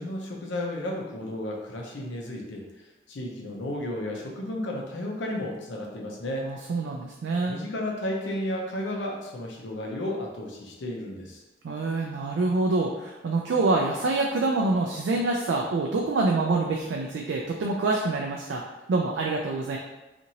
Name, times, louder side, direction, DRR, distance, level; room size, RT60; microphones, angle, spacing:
voice 1, 0.0-2.6 3.1-6.5 7.5-11.4, left 1 dB, 80° left, 0 dB, 0.6 m, -33 dB
voice 2, 6.4-7.6 11.6-18.6 18.9-19.8, right 3 dB, 75° right, 0 dB, 0.3 m, -26 dB
2.7 x 2.5 x 2.8 m, 1.1 s
head